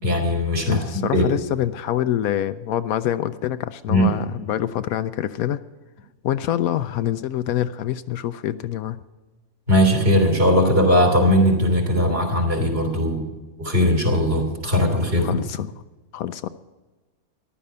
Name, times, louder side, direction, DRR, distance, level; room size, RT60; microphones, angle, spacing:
voice 1, 0.0-1.2 3.9-4.1 9.7-15.4, equal, 40° right, 0 dB, 3.4 m, -19 dB
voice 2, 0.7-5.6 6.2-9.0 15.2-15.7 16.1-16.5, left 11 dB, 75° left, 12 dB, 1.0 m, -25 dB
14.5 x 11.5 x 5.4 m, 1.2 s
omnidirectional pair, 1.6 m